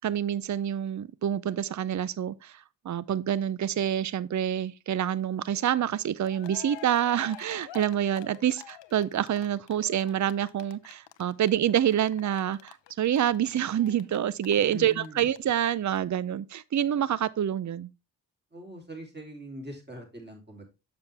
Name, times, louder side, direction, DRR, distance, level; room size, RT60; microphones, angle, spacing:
voice 1, 0.0-17.9, right 10 dB, 45° right, 0.5 m, -27 dB
Cheering, 6.0-6.1 6.2-15.4 15.6-15.7 16.0-16.1, left 12 dB, 90° left, 0.6 m, -48 dB
voice 2, 14.7-15.3 18.5-20.7, equal, 25° right, 3.0 m, -42 dB
6.9 x 6.9 x 3.3 m
cardioid pair, 45°, 43 cm